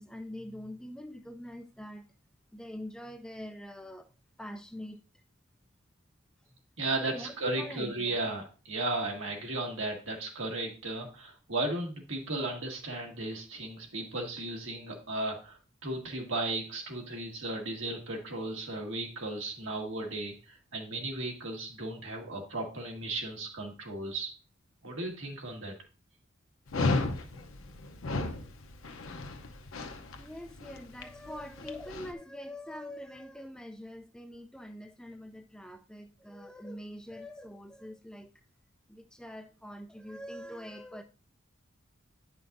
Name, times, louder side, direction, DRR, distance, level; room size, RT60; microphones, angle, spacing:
voice 1, 0.0-2.0 2.5-4.1 4.4-5.0 7.1-8.2 30.2-38.3 38.9-41.0, left 1 dB, 5° left, 0.3 m, -44 dB
voice 2, 6.8-24.3 24.8-25.7, right 2 dB, 75° right, 1.7 m, -35 dB
Dog, 26.7-32.1, left 3 dB, 85° left, 0.8 m, -34 dB
9.4 x 5.6 x 2.6 m
head